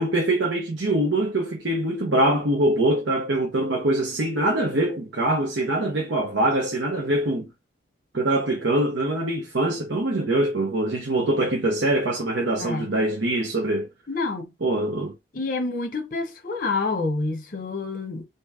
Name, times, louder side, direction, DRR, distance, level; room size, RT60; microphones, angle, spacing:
voice 1, 0.0-7.5 8.1-13.9 14.6-15.1, right 1 dB, 70° right, 0.9 m, -23 dB
voice 2, 14.1-14.5 15.3-18.2, left 3 dB, 45° left, 1.1 m, -28 dB
3.3 x 3.0 x 4.7 m
head